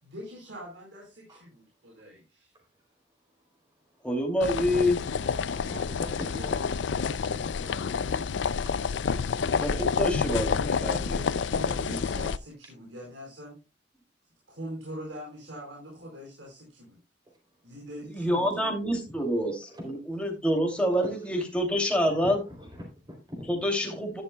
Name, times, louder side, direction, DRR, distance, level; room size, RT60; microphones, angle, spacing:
voice 1, 0.0-2.5 5.6-8.6 11.5-13.6 14.5-17.0 17.6-18.7, equal, 80° right, -3 dB, 4.6 m, -43 dB
voice 2, 4.0-5.0 9.6-11.2 11.5-12.0 18.1-22.4 23.5-24.2, equal, 5° left, 1 dB, 2.6 m, -27 dB
sound 1, 4.4-12.4, left 6 dB, 70° left, 0.4 m, -29 dB
voice 3, 5.5-6.3 22.1-23.5, left 1 dB, 25° right, 0 dB, 3.1 m, -43 dB
12.0 x 11.0 x 2.2 m, 0.28 s
head